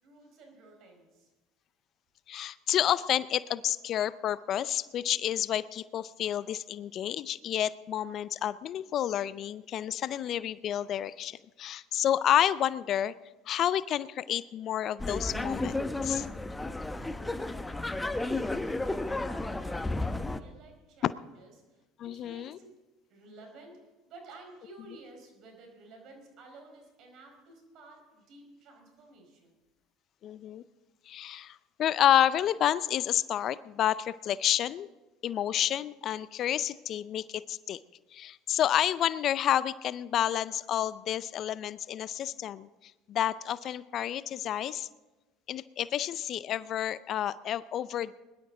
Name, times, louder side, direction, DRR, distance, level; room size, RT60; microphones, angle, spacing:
voice 1, 0.0-1.3 17.2-17.7 18.1-29.5, right 2 dB, 55° right, 3 dB, 4.7 m, -53 dB
voice 2, 2.3-13.1 13.5-16.3 21.0-21.1 22.0-22.6 30.2-30.6 31.1-34.9 35.2-37.8 38.1-44.9 45.5-48.2, left 11 dB, 50° left, 18 dB, 0.5 m, -30 dB
sound 1, 15.0-20.4, left 2 dB, 10° left, 0.8 m, -32 dB
21.5 x 12.0 x 3.8 m, 1.1 s
hypercardioid pair, 75°, 0 cm